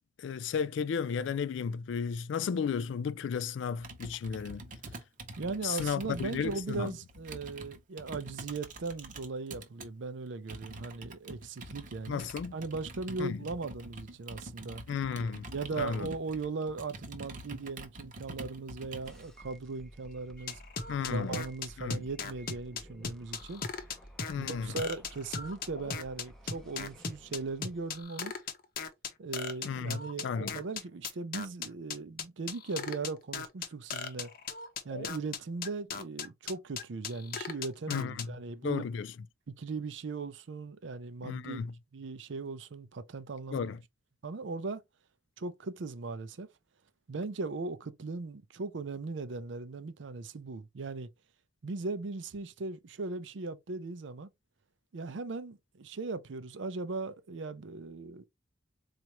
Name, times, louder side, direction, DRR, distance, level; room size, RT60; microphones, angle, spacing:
voice 1, 0.2-4.6 5.6-6.9 12.1-12.5 13.2-13.4 14.9-15.4 15.8-16.1 20.9-21.3 21.8-22.0 24.3-24.7 29.6-30.6 37.9-38.3 38.6-39.1 41.2-41.7 43.5-43.8, left 6 dB, 70° left, 0.3 m, -33 dB
Computer keyboard, 3.8-9.9 10.5-19.3, right 2 dB, 45° right, 0.8 m, -46 dB
voice 2, 5.4-14.8 15.5-20.6 21.0-23.6 24.4-28.3 29.2-34.3 34.8-38.9 39.6-41.7 41.9-43.7 44.2-44.8 45.4-46.5 47.1-51.1 51.6-54.3 54.9-58.2, right 3 dB, 70° right, 0.5 m, -38 dB
sound 1, 19.0-28.0, right 1 dB, ahead, 0.6 m, -54 dB
sound 2, 20.5-38.2, left 5 dB, 50° left, 0.7 m, -37 dB
4.2 x 2.4 x 2.9 m
head